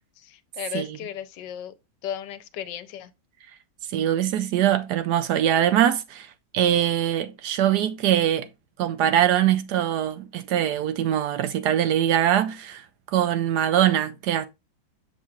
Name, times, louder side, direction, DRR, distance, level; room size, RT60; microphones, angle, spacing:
voice 1, 0.0-1.7 2.0-3.1, left 10 dB, 75° left, 1.3 m, -35 dB
voice 2, 3.9-6.3 6.5-8.5 8.8-12.8 13.1-14.5, right 11 dB, 75° right, 1.1 m, -22 dB
7.2 x 6.3 x 2.3 m
omnidirectional pair, 2.0 m